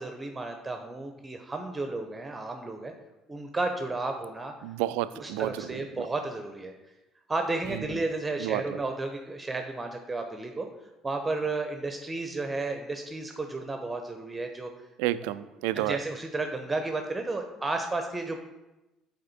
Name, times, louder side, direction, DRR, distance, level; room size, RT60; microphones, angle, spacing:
voice 1, 0.0-2.9 3.3-4.5 5.2-6.7 7.3-10.7 11.0-14.7 15.7-18.4, right 2 dB, 20° right, 5 dB, 0.9 m, -32 dB
voice 2, 4.6-6.1 8.4-8.6 15.0-16.0, right 15 dB, 75° right, 14 dB, 0.3 m, -30 dB
7.8 x 4.3 x 4.2 m, 1.0 s
hypercardioid pair, 55°, 0 cm